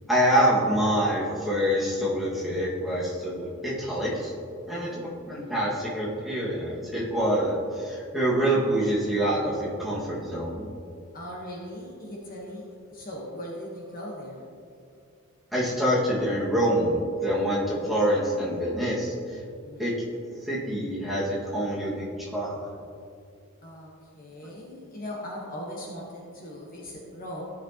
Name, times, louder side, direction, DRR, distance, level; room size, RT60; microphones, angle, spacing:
voice 1, 0.1-4.3 4.7-10.7 15.5-19.4 19.8-19.9 20.3-22.0 22.3-22.6, equal, ahead, -8 dB, 1.8 m, -26 dB
voice 2, 4.7-5.1 11.1-14.4 19.6-19.9 23.6-27.4, equal, 40° left, -3 dB, 1.2 m, -39 dB
14.0 x 6.0 x 2.9 m, 2.3 s
head